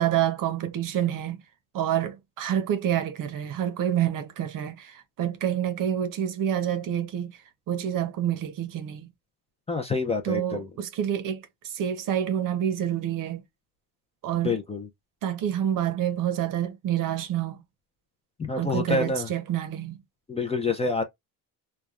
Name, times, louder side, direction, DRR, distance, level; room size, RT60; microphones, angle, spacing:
voice 1, 0.0-1.4 1.7-7.3 7.7-9.1 10.2-13.4 14.2-14.6 15.2-17.6 18.6-20.0, right 10 dB, 55° right, 0.7 m, -28 dB
voice 2, 9.7-10.7 14.4-14.9 18.4-19.3 20.3-21.0, left 3 dB, 15° left, 0.3 m, -27 dB
3.2 x 2.2 x 2.3 m
cardioid pair, 130°, 40 cm